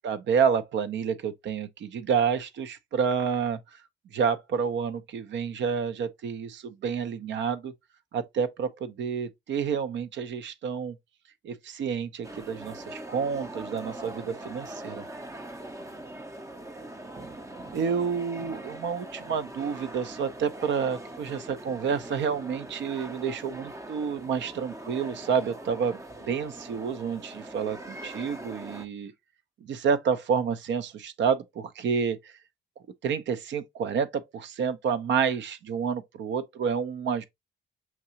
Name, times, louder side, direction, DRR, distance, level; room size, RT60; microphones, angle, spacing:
voice 1, 0.0-3.8 4.1-7.7 8.1-11.0 11.4-15.0 17.7-29.1 29.6-32.3 33.0-37.2, right 6 dB, 65° right, 0.7 m, -29 dB
sound 1, 12.2-28.9, right 1 dB, 15° right, 0.6 m, -42 dB
5.9 x 2.8 x 2.7 m
cardioid pair, 90°, 20 cm